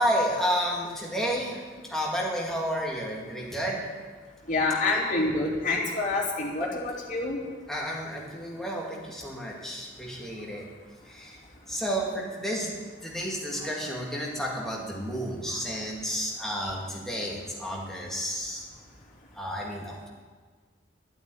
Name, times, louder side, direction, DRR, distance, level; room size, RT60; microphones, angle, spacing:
voice 1, 0.0-3.9 7.7-10.7 11.1-11.4 11.7-12.7 13.0-18.7 19.3-20.1, equal, ahead, -3 dB, 2.3 m, -31 dB
voice 2, 4.5-7.4, left 3 dB, 40° left, -4 dB, 3.3 m, -27 dB
12.5 x 8.9 x 9.3 m, 1.5 s
head